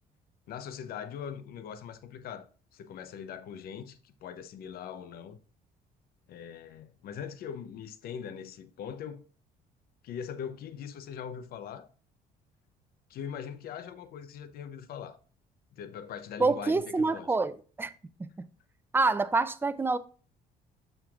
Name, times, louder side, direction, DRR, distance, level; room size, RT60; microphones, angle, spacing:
voice 1, 0.5-5.4 6.3-9.2 10.0-11.9 13.1-15.2 15.7-17.3, left 8 dB, 65° left, 0.6 m, -41 dB
voice 2, 16.4-17.5 17.8-17.9 18.2-18.3 18.9-20.0, right 3 dB, 15° right, 0.4 m, -26 dB
6.5 x 6.0 x 2.4 m
cardioid pair, 110°, 17 cm